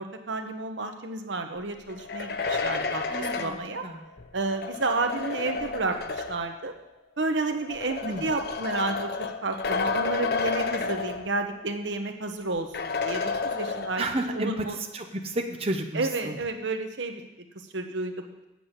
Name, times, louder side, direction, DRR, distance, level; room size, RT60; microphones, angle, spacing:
voice 1, 0.0-3.8 4.3-6.7 7.2-9.1 9.4-14.0 14.3-14.8 15.9-17.2 17.7-18.3, right 3 dB, 90° right, 6 dB, 1.0 m, -31 dB
sound 1, 1.9-6.6 7.5-11.7 12.0-12.1 12.7-14.3, left 4 dB, 55° left, 0.6 m, -31 dB
voice 2, 3.1-4.1 8.0-8.3 14.0-14.7 14.9-16.4, right 1 dB, 35° right, 4 dB, 0.8 m, -31 dB
7.8 x 7.1 x 8.1 m, 0.97 s
head